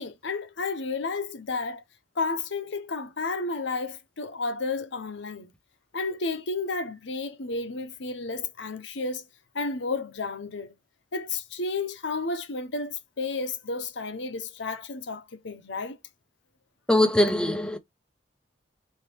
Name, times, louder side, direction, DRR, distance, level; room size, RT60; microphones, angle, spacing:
voice 1, 0.0-1.8 2.2-5.5 5.9-9.2 9.5-10.7 11.1-16.0, left 3 dB, 70° left, 0.9 m, -32 dB
voice 2, 16.9-17.8, left 1 dB, 5° left, 0.6 m, -21 dB
4.3 x 2.9 x 3.5 m
head